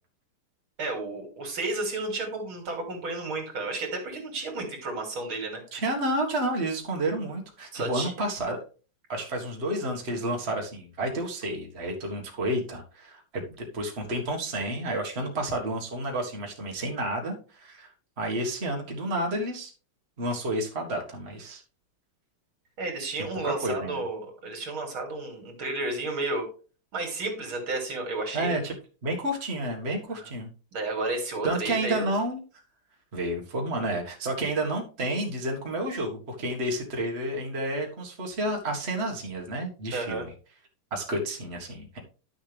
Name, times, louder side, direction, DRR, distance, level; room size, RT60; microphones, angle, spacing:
voice 1, 0.8-5.6 7.7-8.1 22.8-26.5 26.9-28.6 30.2-30.3 30.7-32.2 39.9-40.3, right 2 dB, 80° right, 3 dB, 3.4 m, -32 dB
voice 2, 5.7-8.6 9.1-17.9 18.2-19.7 20.2-21.6 23.4-24.0 28.3-28.7 29.0-30.5 31.4-32.4 33.1-40.3 40.9-42.0, right 1 dB, 30° right, 1 dB, 1.9 m, -30 dB
11.5 x 6.5 x 3.4 m, 0.36 s
omnidirectional pair, 2.2 m